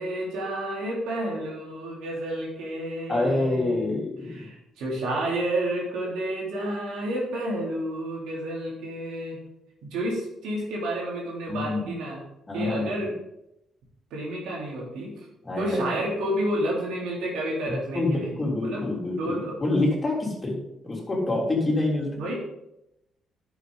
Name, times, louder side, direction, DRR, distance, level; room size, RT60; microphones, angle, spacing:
voice 1, 0.0-3.9 4.2-9.4 9.8-12.2 12.5-13.1 14.1-15.3 15.6-18.8 19.1-19.5 22.2-22.3, right 1 dB, 85° right, -3 dB, 3.4 m, -30 dB
voice 2, 3.1-4.5 11.5-11.9 12.5-13.0 15.4-15.8 17.7-22.2, left 2 dB, 25° left, -2 dB, 3.4 m, -27 dB
10.5 x 7.0 x 4.0 m, 0.86 s
cardioid pair, 90°, 0 cm